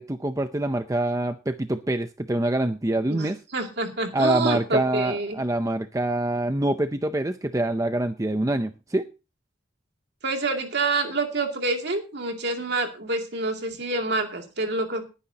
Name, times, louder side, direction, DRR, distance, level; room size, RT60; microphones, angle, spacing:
voice 1, 0.0-3.4 4.1-9.1, right 1 dB, 15° right, 9 dB, 0.5 m, -25 dB
voice 2, 3.1-5.4 10.2-15.0, right 3 dB, 55° right, 4 dB, 2.6 m, -27 dB
19.5 x 9.8 x 2.8 m, 0.31 s
head